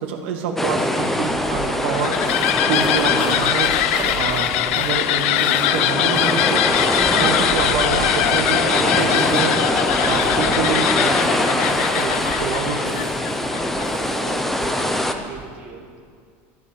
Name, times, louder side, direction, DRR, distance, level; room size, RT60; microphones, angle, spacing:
voice 1, 0.0-2.2 2.7-3.7 4.2-6.7 7.1-9.6 10.0-13.0, right 6 dB, 65° right, 2 dB, 1.9 m, -26 dB
sound 1, 0.6-15.1, left 1 dB, 5° left, 0.6 m, -23 dB
sound 2, 1.0-15.4, right 5 dB, 45° right, 3.0 m, -37 dB
sound 3, 1.6-14.2, left 14 dB, 75° left, 0.4 m, -22 dB
voice 2, 14.1-16.0, right 6 dB, 25° right, -2 dB, 1.5 m, -39 dB
13.0 x 10.5 x 7.1 m, 2.1 s
supercardioid pair, 170°, 7 cm